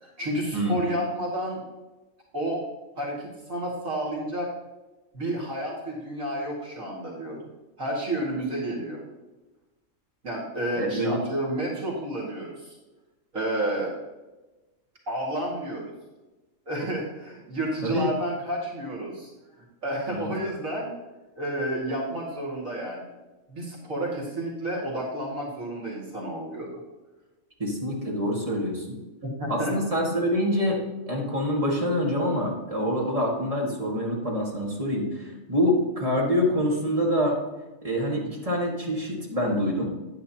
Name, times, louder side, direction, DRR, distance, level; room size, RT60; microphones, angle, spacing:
voice 1, 0.0-1.6 2.3-2.6 3.0-4.5 5.1-7.4 7.8-9.0 10.2-12.8 13.3-13.9 15.1-15.9 16.7-19.3 19.8-20.9 21.4-23.0 23.5-26.8 29.2-29.7, right 1 dB, 70° right, -4 dB, 2.6 m, -30 dB
voice 2, 10.8-11.2 17.8-18.1 20.1-20.3 27.6-29.0 29.5-37.4 37.8-39.8, equal, 25° right, -3 dB, 2.0 m, -26 dB
10.5 x 9.8 x 2.9 m, 1.1 s
omnidirectional pair, 1.4 m